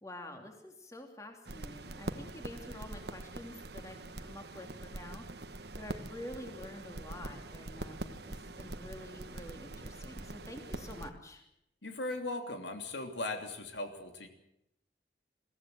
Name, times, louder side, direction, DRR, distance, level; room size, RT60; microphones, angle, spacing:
voice 1, 0.0-5.2 5.8-11.4, left 1 dB, 20° left, 3 dB, 3.0 m, -48 dB
sound 1, 1.5-11.1, right 2 dB, 70° right, 1.3 m, -44 dB
voice 2, 11.8-14.3, left 2 dB, 90° left, 4 dB, 3.0 m, -38 dB
22.5 x 16.5 x 7.9 m, 0.81 s
head